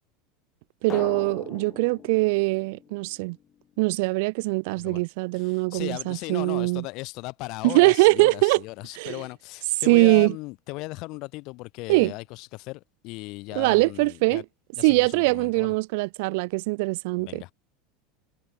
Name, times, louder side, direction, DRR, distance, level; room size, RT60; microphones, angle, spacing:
voice 1, 0.8-3.4 3.8-6.8 7.6-8.6 9.0-9.1 9.9-10.3 11.9-12.1 13.6-14.4 14.8-17.5, right 27 dB, 70° right, 0.7 m, -22 dB
Drum, 0.9-3.6, left 10 dB, 30° left, 1.5 m, -41 dB
voice 2, 5.3-14.4 14.8-15.7 17.2-17.5, left 23 dB, 55° left, 7.6 m, -37 dB
supercardioid pair, 135°, 0 cm